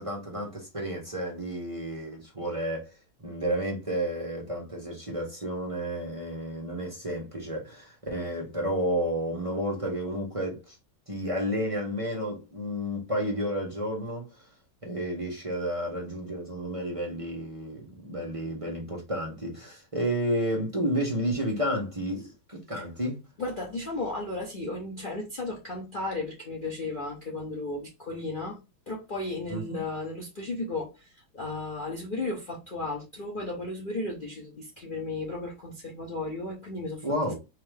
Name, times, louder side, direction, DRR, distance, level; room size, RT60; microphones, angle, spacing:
voice 1, 0.0-2.9 3.2-10.7 11.1-14.3 14.8-23.2 29.5-29.8 37.0-37.3, equal, 25° right, 0.8 m, -31 dB
voice 2, 23.4-28.6 28.9-37.0, left 2 dB, 80° left, 0.4 m, -34 dB
4.2 x 2.7 x 3.3 m
omnidirectional pair, 2.2 m